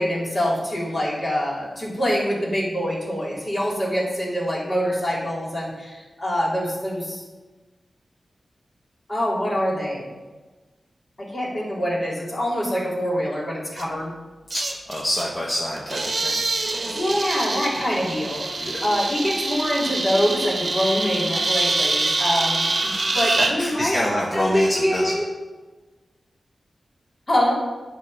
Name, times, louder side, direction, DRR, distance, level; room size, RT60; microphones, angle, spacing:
voice 1, 0.0-7.2 9.1-10.1 11.2-14.1 16.8-18.4 18.8-24.0 24.3-25.2 27.3-27.5, equal, 40° left, -4 dB, 2.8 m, -25 dB
sound 1, 13.8-13.9 14.5-15.3 15.8-23.5, right 2 dB, 50° right, 0.9 m, -25 dB
voice 2, 14.5-16.4 18.6-18.9 23.2-25.2, left 1 dB, 25° left, -3 dB, 1.2 m, -27 dB
9.7 x 3.3 x 6.9 m, 1.2 s
wide cardioid pair, 70°, 0 cm